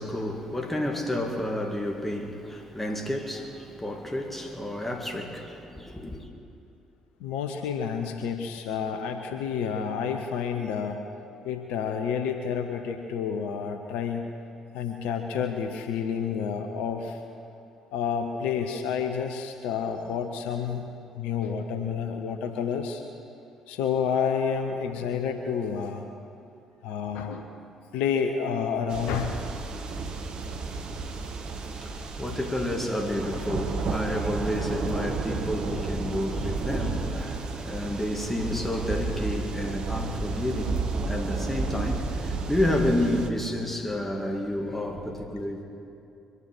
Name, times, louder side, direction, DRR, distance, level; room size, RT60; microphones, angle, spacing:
voice 1, 0.0-6.3 31.1-45.6, left 1 dB, 10° left, 2.3 m, -30 dB
voice 2, 7.2-11.0 11.4-14.3 14.7-17.2 17.9-20.9 21.1-23.0 23.7-26.1 26.8-27.5 27.9-29.4, left 7 dB, 65° left, 0.9 m, -29 dB
sound 1, 28.9-43.3, right 3 dB, 50° right, 1.3 m, -32 dB
23.5 x 9.8 x 6.2 m
figure-of-eight pair, 45°, 2 cm